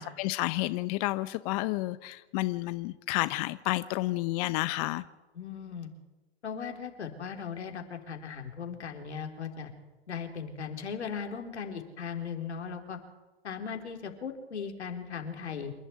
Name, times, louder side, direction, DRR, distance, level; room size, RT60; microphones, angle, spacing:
voice 1, 0.0-5.1, left 19 dB, 35° left, 14 dB, 0.7 m, -30 dB
voice 2, 5.3-5.9 6.4-9.7 10.1-13.0 13.4-15.7, left 6 dB, 80° left, 4 dB, 4.0 m, -38 dB
27.5 x 11.5 x 9.6 m, 1.1 s
hypercardioid pair, 125°, 33 cm